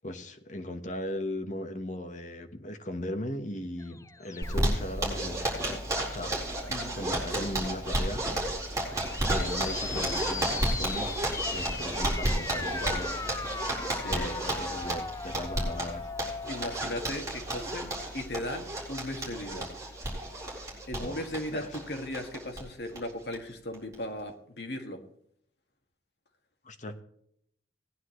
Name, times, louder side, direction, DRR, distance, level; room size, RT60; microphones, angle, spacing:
voice 1, 0.0-5.8 6.1-6.3 6.9-8.2 9.2-11.1 11.4-13.2 14.1-16.1 21.0-21.2 21.5-21.7 26.6-27.0, left 1 dB, 45° left, 7 dB, 1.2 m, -37 dB
sound 1, 3.8-6.0 6.6-7.2 8.9-17.1, left 4 dB, 20° left, 0.5 m, -39 dB
Zipper (clothing), 4.4-22.6 22.9-23.0 23.3-23.4 23.7-24.2, right 1 dB, 20° right, 4.1 m, -32 dB
voice 2, 13.9-14.3 16.5-19.7 20.9-25.0, left 1 dB, 65° left, 4 dB, 1.8 m, -37 dB
18.5 x 9.9 x 3.2 m, 0.72 s
head